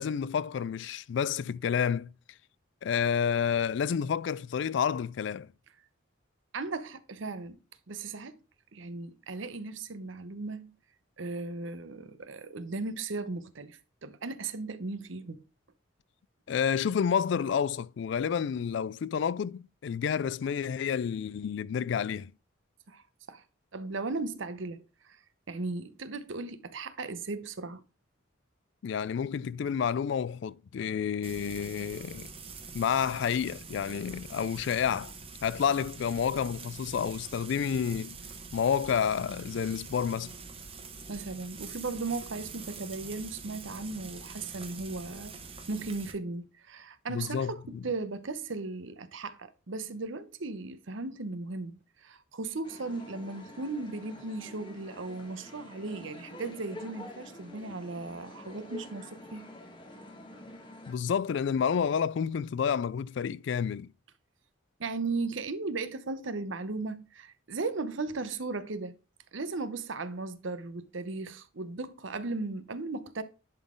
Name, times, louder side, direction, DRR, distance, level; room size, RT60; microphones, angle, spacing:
voice 1, 0.0-2.1 2.8-5.5 16.5-22.3 28.8-32.3 32.7-35.1 35.4-38.1 38.5-40.3 47.1-47.8 60.9-63.9, left 7 dB, 65° left, 0.3 m, -29 dB
voice 2, 6.5-7.6 7.9-8.4 8.7-10.7 11.2-15.4 22.9-23.0 23.3-23.4 23.7-25.2 25.5-27.8 41.1-45.3 45.7-59.5 64.8-69.0 69.3-73.2, right 3 dB, 70° right, 0.8 m, -37 dB
Frying (food), 31.2-46.1, right 4 dB, 30° right, 1.1 m, -45 dB
sound 1, 52.6-60.9, left 1 dB, 25° left, 1.4 m, -47 dB
10.5 x 3.9 x 3.7 m
head